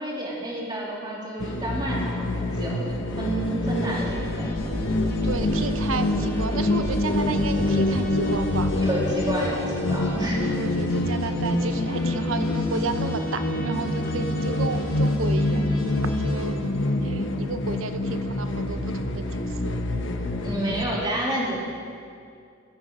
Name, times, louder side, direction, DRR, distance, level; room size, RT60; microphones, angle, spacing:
voice 1, 0.0-4.5 8.8-10.5 20.4-21.6, right 1 dB, 20° right, -4 dB, 2.7 m, -29 dB
sound 1, 1.4-20.8, left 1 dB, 65° left, 1.1 m, -26 dB
sound 2, 3.8-16.4, equal, 50° left, 4.1 m, -38 dB
voice 2, 5.1-8.7 10.5-15.7 16.2-16.7 17.0-19.8, right 4 dB, 85° right, 9 dB, 0.8 m, -32 dB
17.5 x 9.6 x 5.0 m, 2.3 s
head